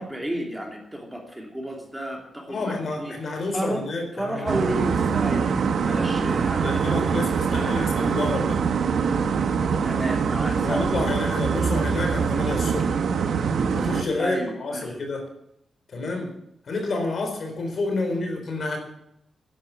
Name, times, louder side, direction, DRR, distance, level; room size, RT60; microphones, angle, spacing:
voice 1, 0.0-3.9 4.1-7.8 9.8-10.9 14.2-14.9, right 1 dB, 5° right, 1 dB, 2.9 m, -32 dB
voice 2, 2.5-4.5 6.6-8.6 10.6-12.9 13.7-15.3 15.9-16.3 16.6-18.8, left 2 dB, 50° left, 4 dB, 4.1 m, -29 dB
sound 1, 4.5-14.0, right 6 dB, 70° right, 1.2 m, -24 dB
12.5 x 11.0 x 7.0 m, 0.78 s
wide cardioid pair, 135°, 0 cm